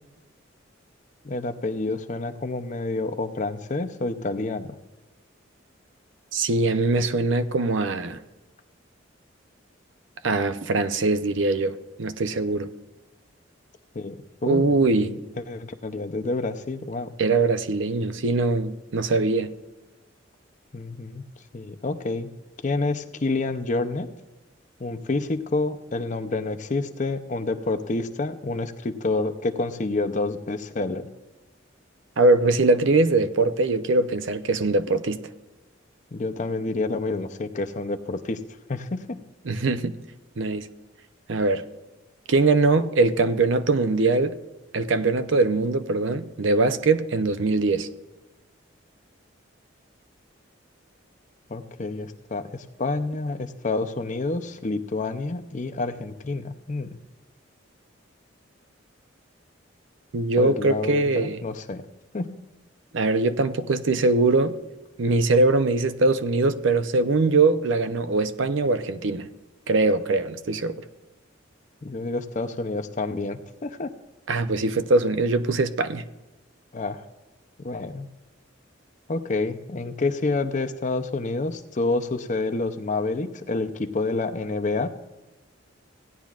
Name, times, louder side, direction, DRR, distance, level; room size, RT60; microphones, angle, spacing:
voice 1, 1.2-4.7 13.9-17.1 20.7-21.2 21.5-22.3 22.6-24.1 24.8-31.1 36.1-38.4 38.7-39.2 51.5-57.0 60.4-61.8 62.1-62.3 71.8-73.9 76.7-77.0 77.6-78.1 79.1-84.9, left 3 dB, 40° left, 0.6 m, -28 dB
voice 2, 6.3-8.2 10.2-12.7 14.4-15.2 17.2-19.5 32.2-35.2 39.4-39.9 40.4-40.7 41.3-41.6 42.3-44.4 44.7-47.9 60.1-61.4 62.9-64.5 65.0-69.3 69.7-70.8 74.3-76.0, right 3 dB, 70° right, 0.6 m, -22 dB
16.5 x 10.5 x 2.4 m
head